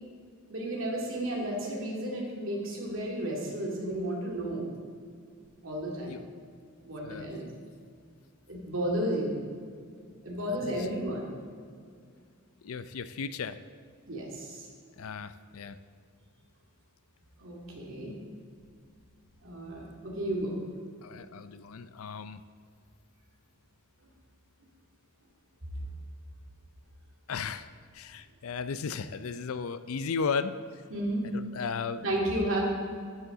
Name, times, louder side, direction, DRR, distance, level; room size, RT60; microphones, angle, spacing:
voice 1, 0.5-4.7 5.6-6.2 6.8-7.5 8.5-9.4 10.2-11.3 14.1-14.7 17.4-18.2 19.4-20.6 25.7-25.8 30.9-31.2 32.0-32.7, right 1 dB, 65° right, -3 dB, 2.5 m, -32 dB
voice 2, 5.9-6.2 7.0-7.3 10.4-11.0 12.6-13.6 15.0-15.8 21.0-22.4 27.3-27.7 27.9-30.5 31.2-32.1, left 5 dB, 85° left, 13 dB, 0.5 m, -35 dB
12.0 x 8.4 x 3.8 m, 2.1 s
head